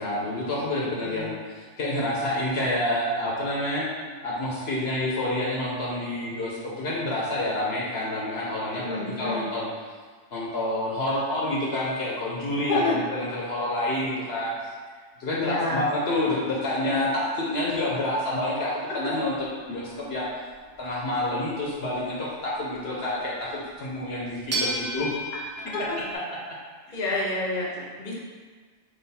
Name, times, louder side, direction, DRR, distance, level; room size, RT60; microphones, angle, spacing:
voice 1, 0.0-3.9 4.2-9.7 10.3-12.8 13.1-14.5 15.2-20.3 20.8-25.1 26.3-26.4, left 1 dB, 60° left, -5 dB, 1.1 m, -28 dB
voice 2, 1.0-1.3 8.7-9.4 12.7-13.0 15.4-15.8 25.9-26.0 26.9-28.1, left 2 dB, 45° left, -4 dB, 1.0 m, -28 dB
Lil' one, 19.3-20.9 23.6-23.7 24.5-26.1, right 1 dB, 20° right, 0.5 m, -32 dB
3.9 x 3.2 x 4.2 m, 1.5 s
omnidirectional pair, 1.2 m